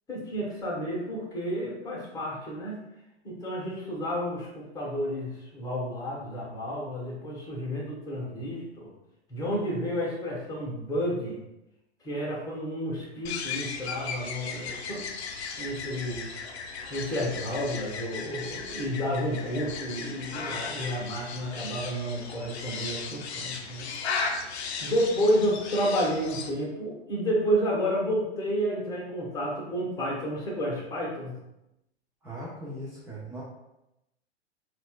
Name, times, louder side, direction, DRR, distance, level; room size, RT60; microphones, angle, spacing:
voice 1, 0.1-2.8 3.2-8.9 9.3-11.4 12.0-15.1 15.6-16.2 16.9-23.9 24.8-31.4, equal, 10° left, -5 dB, 1.0 m, -30 dB
sound 1, 13.3-26.5, left 5 dB, 70° left, 0.6 m, -36 dB
voice 2, 32.2-33.4, right 1 dB, 5° right, -8 dB, 0.3 m, -39 dB
4.0 x 2.4 x 2.3 m, 0.91 s
figure-of-eight pair, 105°, 34 cm